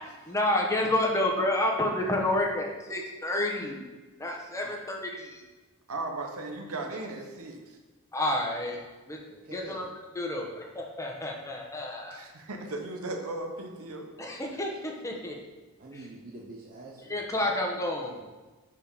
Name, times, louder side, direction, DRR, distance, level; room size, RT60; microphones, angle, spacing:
voice 1, 0.3-3.8 4.2-5.4 8.1-8.8 9.1-9.2 9.5-9.9 10.2-10.5 10.7-12.2 14.2-15.3 17.1-18.2, left 1 dB, 15° left, 0 dB, 0.9 m, -29 dB
voice 2, 5.9-7.6 12.1-14.1, right 2 dB, 80° right, 3 dB, 1.0 m, -36 dB
voice 3, 9.3-9.9 15.8-17.5, right 2 dB, 40° right, -3 dB, 0.7 m, -46 dB
5.0 x 4.8 x 5.2 m, 1.3 s
head